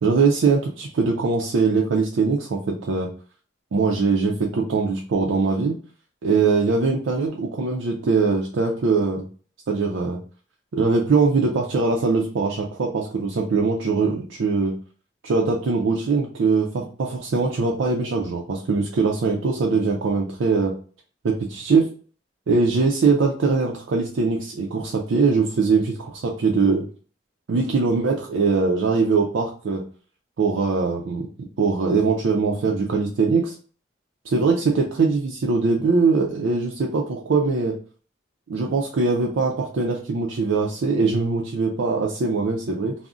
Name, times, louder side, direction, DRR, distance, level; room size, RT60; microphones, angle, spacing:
voice 1, 0.0-3.1 3.7-5.8 6.2-9.3 9.7-10.2 10.7-14.8 15.2-20.7 21.2-21.9 22.5-26.8 27.5-29.8 30.4-31.3 31.6-33.5 34.3-37.7 38.5-42.9, right 4 dB, 80° right, 0 dB, 0.4 m, -22 dB
2.4 x 2.0 x 3.6 m, 0.41 s
head